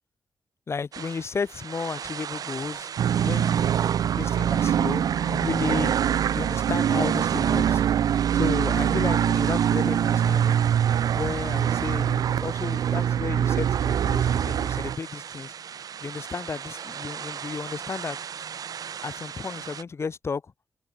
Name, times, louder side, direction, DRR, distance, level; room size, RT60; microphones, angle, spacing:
voice 1, 0.7-2.9 3.2-3.7 4.2-5.9 6.3-7.8 8.3-10.6 11.1-15.5 16.0-18.2 19.0-20.5, left 5 dB, 40° left, 6.5 m, -33 dB
sound 1, 0.9-19.8, right 8 dB, 65° right, 1.1 m, -38 dB
sound 2, 3.0-15.0, right 9 dB, 85° right, 0.7 m, -23 dB
wide cardioid pair, 140°, 7 cm